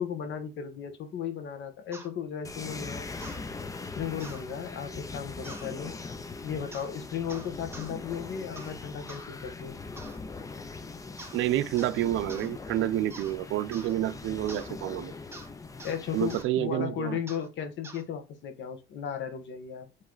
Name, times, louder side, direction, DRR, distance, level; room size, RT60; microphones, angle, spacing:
voice 1, 0.0-3.1 3.8-5.9 6.4-9.8 15.8-19.9, left 8 dB, 65° left, 1.3 m, -35 dB
sound 1, 1.9-2.1 3.2-3.4 4.2-4.4 5.4-5.7 6.7-6.9 7.3-7.9 8.6-8.8 9.1-9.3 10.0-10.2 11.2-11.4 11.8-12.0 12.3-12.5 13.1-13.4 13.7-13.9 14.5-14.7 15.3-15.5 15.8-16.0 16.3-16.5 17.3-17.5 17.8-18.0, right 2 dB, 10° right, 0.9 m, -46 dB
sound 2, 2.4-16.4, left 3 dB, 15° left, 0.5 m, -41 dB
voice 2, 11.3-15.1 16.1-17.2, right 13 dB, 75° right, 0.6 m, -29 dB
7.6 x 3.2 x 3.9 m
cardioid pair, 145°, 21 cm